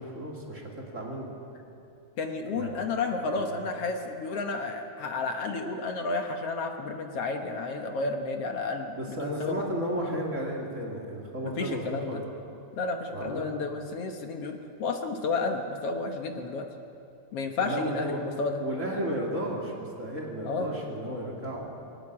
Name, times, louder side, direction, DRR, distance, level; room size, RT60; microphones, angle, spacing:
voice 1, 0.0-1.3 2.5-2.8 3.3-3.5 8.9-12.3 13.1-13.5 17.6-18.3 18.6-21.7, right 1 dB, 25° right, -1 dB, 2.9 m, -33 dB
voice 2, 2.2-9.6 11.4-12.2 12.8-16.6 17.3-18.6 20.4-20.7, left 3 dB, 60° left, 4 dB, 1.9 m, -31 dB
21.0 x 18.5 x 7.6 m, 2.8 s
omnidirectional pair, 3.5 m